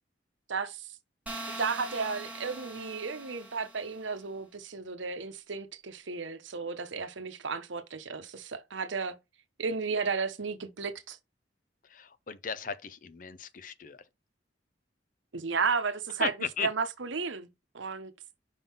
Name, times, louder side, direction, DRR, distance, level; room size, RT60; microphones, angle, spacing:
voice 1, 0.5-0.9 1.6-9.1 9.6-11.2 15.3-16.3 16.6-17.5 17.7-18.1, right 5 dB, 90° right, 0.9 m, -33 dB
sound 1, 1.3-4.1, right 2 dB, 10° right, 1.1 m, -42 dB
voice 2, 11.8-14.0 16.2-16.7, left 6 dB, 45° left, 0.6 m, -36 dB
5.4 x 3.7 x 5.4 m
head